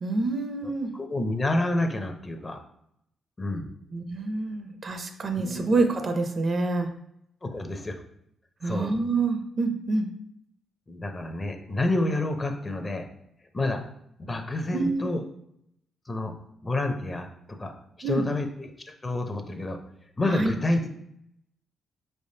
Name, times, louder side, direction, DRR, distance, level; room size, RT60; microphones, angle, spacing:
voice 1, 0.0-0.9 3.9-6.9 8.6-10.1 14.7-15.1 18.0-18.3 20.3-20.5, right 3 dB, 45° right, 7 dB, 0.5 m, -27 dB
voice 2, 0.6-2.6 3.4-3.7 5.4-5.6 7.4-8.0 8.6-8.9 10.9-13.1 13.5-13.8 14.2-15.2 16.1-16.3 16.6-17.7 18.0-19.8 20.2-20.9, left 2 dB, 25° left, 5 dB, 0.6 m, -29 dB
4.7 x 3.3 x 2.8 m, 0.74 s
cardioid pair, 80°, 0 cm